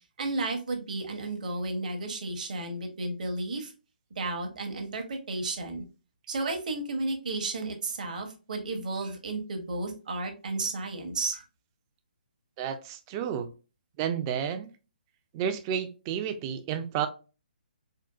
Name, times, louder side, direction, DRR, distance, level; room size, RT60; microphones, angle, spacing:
voice 1, 0.2-3.7 4.2-5.8 6.3-11.4, right 2 dB, 55° right, 4 dB, 0.8 m, -33 dB
voice 2, 12.6-13.5 14.0-14.7 15.3-17.1, right 8 dB, 25° right, 9 dB, 0.4 m, -31 dB
3.7 x 2.4 x 2.2 m, 0.33 s
figure-of-eight pair, 135°, 5 cm